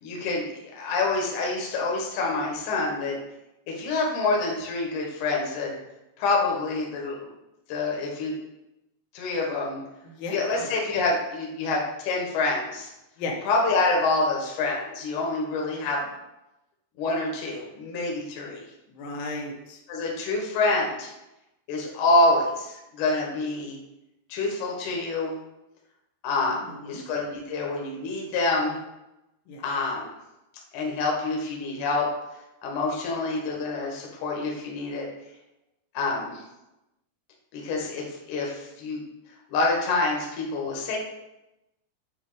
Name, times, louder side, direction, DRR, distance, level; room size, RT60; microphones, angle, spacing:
voice 1, 0.0-3.2 3.7-5.8 6.2-7.3 7.7-8.3 9.1-9.8 10.3-12.9 13.5-16.1 17.0-18.6 19.9-21.1 21.7-23.8 24.3-25.3 26.2-28.8 29.6-30.1 30.7-32.1 32.6-35.1 35.9-36.4 37.5-39.0 39.5-41.0, left 3 dB, 65° left, -1 dB, 2.3 m, -27 dB
voice 2, 10.2-10.7 13.2-13.4 18.9-19.8 26.6-27.0 29.5-29.6, left 2 dB, 80° left, 0 dB, 2.9 m, -35 dB
8.0 x 3.1 x 4.8 m, 0.91 s
omnidirectional pair, 4.8 m